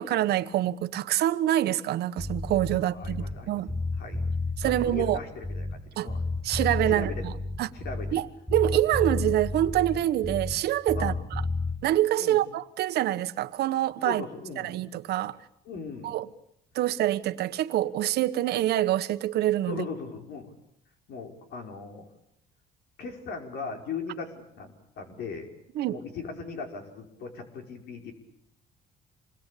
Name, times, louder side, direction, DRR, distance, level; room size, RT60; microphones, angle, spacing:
voice 1, 0.0-3.7 4.6-5.2 6.0-6.1 6.4-7.3 7.6-7.7 8.1-8.3 8.5-11.1 11.8-14.2 14.6-15.4 16.0-16.3 16.7-19.8 25.7-26.0, right 13 dB, 75° right, 1.3 m, -26 dB
Bass guitar, 2.2-3.4 3.7-5.8 6.1-8.2 8.5-10.6 10.9-11.8, left 2 dB, 5° left, 5.1 m, -31 dB
voice 2, 2.8-3.6 3.9-4.2 4.6-6.2 6.9-7.2 7.7-8.1 10.9-11.2 12.2-12.4 14.0-14.8 15.7-16.1 19.7-20.5 21.1-22.1 23.0-25.5 25.9-28.1, left 5 dB, 70° left, 5.3 m, -38 dB
27.0 x 21.0 x 8.5 m
cardioid pair, 110°, 17 cm